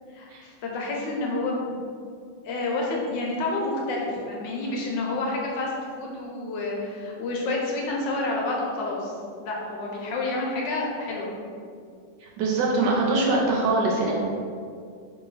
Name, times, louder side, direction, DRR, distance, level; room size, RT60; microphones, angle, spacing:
voice 1, 0.1-1.8 2.4-11.3, left 2 dB, 70° left, -2 dB, 1.2 m, -29 dB
voice 2, 12.4-14.1, right 2 dB, 75° right, -2 dB, 1.1 m, -23 dB
2.9 x 2.8 x 3.9 m, 2.3 s
omnidirectional pair, 2.1 m